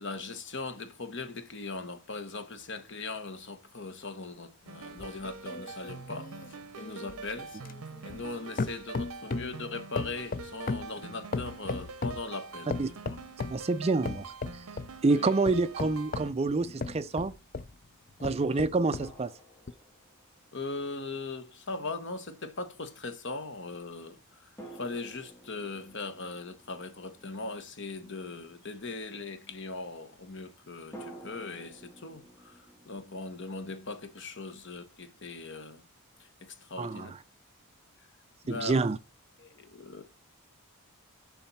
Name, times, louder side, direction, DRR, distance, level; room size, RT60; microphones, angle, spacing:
voice 1, 0.0-7.5 8.0-12.7 15.1-15.3 20.5-35.8 36.2-37.1 38.4-38.8 39.4-40.0, left 3 dB, 55° left, 1.3 m, -40 dB
sound 1, 4.7-16.3, right 5 dB, 80° right, 0.7 m, -45 dB
sound 2, 5.0-8.3 8.6-9.6 10.0-12.3 12.7-13.6 14.1-14.9 15.5-17.7 18.2-19.1 19.7-19.8, left 3 dB, 40° left, 0.5 m, -36 dB
voice 2, 13.5-14.6 15.0-17.3 18.2-19.3 36.8-37.1 38.5-39.0, right 3 dB, 30° right, 0.4 m, -27 dB
sound 3, 19.0-20.5 24.6-28.2 30.9-33.7, right 1 dB, 10° left, 1.7 m, -51 dB
7.2 x 5.5 x 5.7 m
head